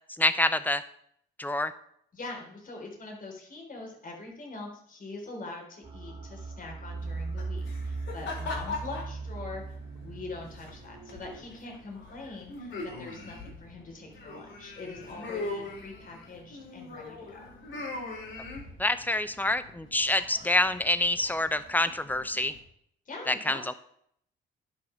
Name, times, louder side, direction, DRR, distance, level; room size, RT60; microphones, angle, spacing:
voice 1, 0.2-0.8 1.4-1.7 18.8-22.5 23.3-23.7, left 1 dB, 10° left, 12 dB, 0.8 m, -26 dB
voice 2, 2.1-17.4 23.1-23.8, left 3 dB, 45° left, 1 dB, 4.1 m, -43 dB
sound 1, 5.8-11.4, right 3 dB, 35° right, 2.5 m, -38 dB
sound 2, 7.0-22.6, left 3 dB, 70° left, 4.7 m, -42 dB
10.5 x 6.8 x 6.0 m, 0.68 s
cardioid pair, 90°, 20 cm